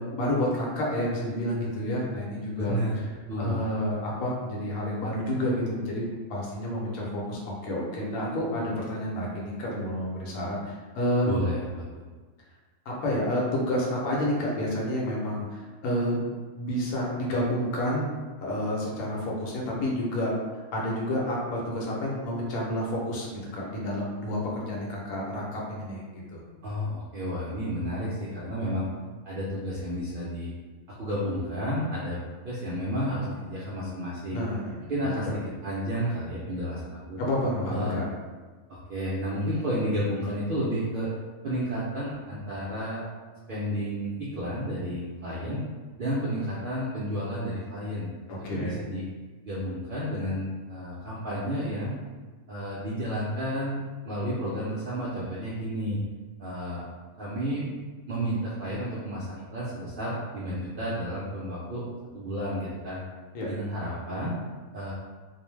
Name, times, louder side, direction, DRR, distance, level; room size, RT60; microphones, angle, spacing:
voice 1, 0.0-2.8 3.4-11.3 12.9-16.3 16.6-18.1 18.4-20.3 20.7-23.3 23.5-26.4 34.3-34.8 35.0-35.3 37.2-38.0 48.3-48.8 63.3-63.5, left 1 dB, 80° left, -4 dB, 1.1 m, -29 dB
voice 2, 2.6-3.0 3.3-3.6 11.2-12.1 26.6-28.9 29.2-30.5 31.0-32.2 32.4-34.4 34.9-37.2 37.7-38.0 38.7-41.1 41.4-43.0 43.5-45.6 46.0-48.1 48.5-49.0 49.4-52.0 52.5-56.0 56.4-56.9 57.2-57.7 58.1-61.8 62.1-63.0 63.5-64.4 64.7-64.9, equal, 75° right, -8 dB, 0.5 m, -31 dB
2.5 x 2.1 x 3.1 m, 1.4 s
omnidirectional pair, 1.5 m